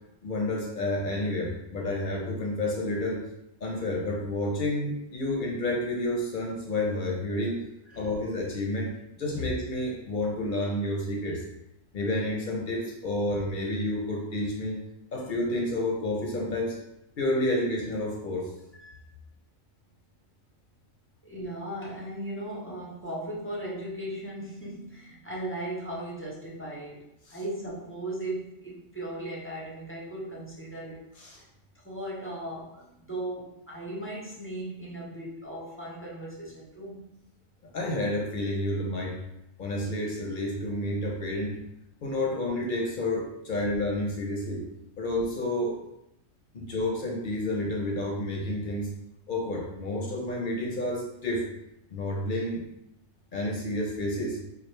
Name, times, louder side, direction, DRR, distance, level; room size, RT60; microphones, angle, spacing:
voice 1, 0.2-3.2 3.6-7.6 7.9-11.4 11.9-14.8 15.1-16.8 17.2-18.5 27.3-27.4 31.2-31.4 37.7-39.2 39.6-41.6 42.0-44.7 45.0-45.8 46.5-48.9 49.3-51.5 51.9-52.6 53.3-54.4, left 1 dB, 50° left, -1 dB, 0.7 m, -30 dB
voice 2, 21.2-31.1 31.7-37.1, right 1 dB, 15° left, -5 dB, 0.5 m, -37 dB
4.2 x 2.4 x 3.2 m, 0.82 s
omnidirectional pair, 1.4 m